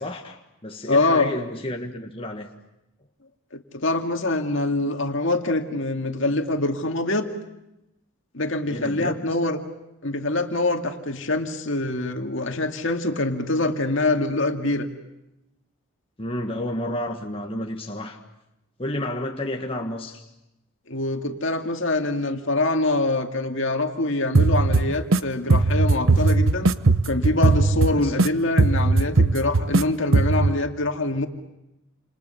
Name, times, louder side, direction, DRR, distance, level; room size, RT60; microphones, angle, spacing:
voice 1, 0.0-2.5 8.7-9.2 16.2-18.2 18.8-20.3 27.9-28.1, left 1 dB, 25° left, 1.6 m, -31 dB
voice 2, 0.9-1.3 3.5-7.3 8.3-9.6 10.0-14.9 20.9-26.8 27.1-31.3, left 2 dB, 55° left, 2.3 m, -24 dB
sound 1, 24.3-25.2 25.5-28.3 28.6-29.8 30.1-30.5, right 3 dB, 65° right, 0.9 m, -18 dB
29.0 x 28.0 x 7.0 m
head